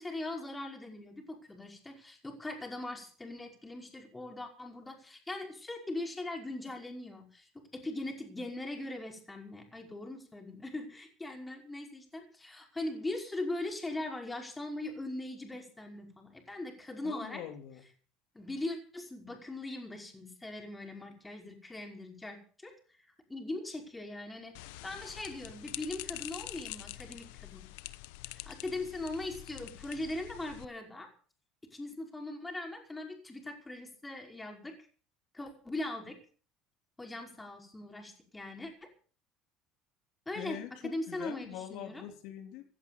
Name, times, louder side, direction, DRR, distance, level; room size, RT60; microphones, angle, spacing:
voice 1, 0.0-17.4 18.3-22.7 23.3-27.7 28.5-31.1 31.7-34.7 35.3-36.2 37.0-38.9 40.3-40.6 40.8-42.0, left 2 dB, 10° left, 3 dB, 5.5 m, -40 dB
voice 2, 17.0-17.8 40.4-42.6, left 11 dB, 70° left, 5 dB, 3.6 m, -44 dB
sound 1, 24.6-30.7, left 19 dB, 90° left, 0.9 m, -45 dB
17.0 x 11.0 x 7.0 m, 0.41 s
supercardioid pair, 115°, 0 cm